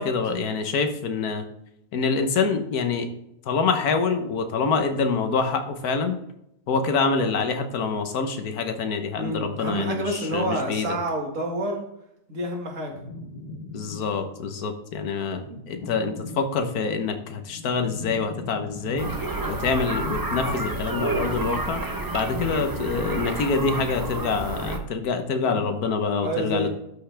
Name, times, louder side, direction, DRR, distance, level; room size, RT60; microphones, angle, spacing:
voice 1, 0.0-1.4 1.9-3.1 3.5-6.2 6.7-10.9 13.7-19.1 19.5-21.8 22.1-26.7, left 4 dB, 70° left, 7 dB, 1.5 m, -26 dB
voice 2, 9.2-11.8 12.3-13.0 19.3-19.4 22.3-22.6 25.4-25.7 26.2-26.7, right 1 dB, 55° right, 0 dB, 2.1 m, -29 dB
sound 1, 12.9-14.4 15.4-16.9 17.3-19.7, left 1 dB, 40° left, 1.2 m, -40 dB
sound 2, 19.0-24.8, right 2 dB, 20° right, 0.6 m, -30 dB
12.5 x 5.8 x 3.4 m, 0.79 s
omnidirectional pair, 1.7 m